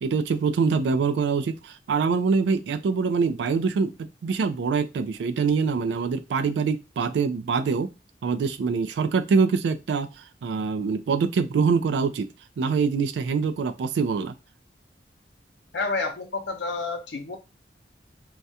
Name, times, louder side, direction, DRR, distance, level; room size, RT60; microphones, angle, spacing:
voice 1, 0.0-3.9 4.2-7.9 8.2-10.1 10.4-12.3 12.6-14.3, right 5 dB, 85° right, 10 dB, 0.3 m, -24 dB
voice 2, 15.7-17.4, left 3 dB, 80° left, 4 dB, 0.6 m, -29 dB
2.3 x 2.1 x 2.7 m, 0.27 s
head